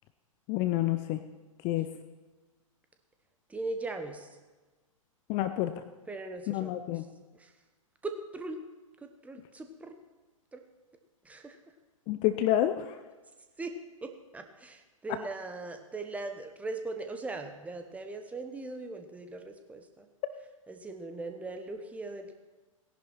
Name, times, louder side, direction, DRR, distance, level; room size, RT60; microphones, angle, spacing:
voice 1, 0.5-1.2 1.6-1.9 5.3-5.7 6.5-7.0 12.1-12.9, left 13 dB, 30° left, 10 dB, 0.6 m, -28 dB
voice 2, 3.5-4.3 6.1-7.1 7.3-7.5 8.0-8.6 9.0-10.0 10.5-10.6 11.2-11.6 13.6-20.1 20.7-22.3, right 2 dB, 10° right, 6 dB, 1.1 m, -40 dB
17.5 x 11.0 x 4.5 m, 1.2 s
figure-of-eight pair, 105°, 18 cm